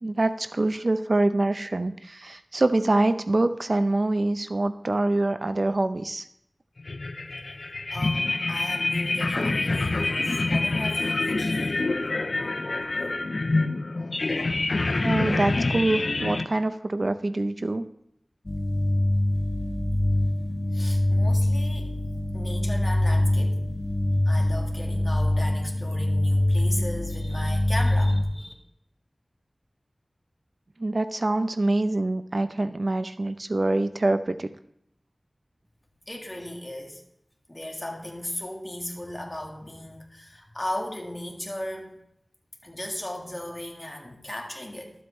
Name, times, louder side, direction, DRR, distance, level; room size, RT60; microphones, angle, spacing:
voice 1, 0.0-6.2 15.0-17.8 30.8-34.5, right 2 dB, 60° right, 10 dB, 0.6 m, -25 dB
sound 1, 6.8-16.4, left 2 dB, 75° left, 0.5 m, -26 dB
voice 2, 7.9-11.9 20.7-21.9 22.3-23.6 24.3-28.5 36.0-37.0 37.5-42.0 42.6-44.9, left 1 dB, 25° left, 1 dB, 2.0 m, -36 dB
sound 2, 18.5-28.2, left 1 dB, 45° left, 1.3 m, -24 dB
12.0 x 7.9 x 3.1 m, 0.75 s
wide cardioid pair, 45°, 0 cm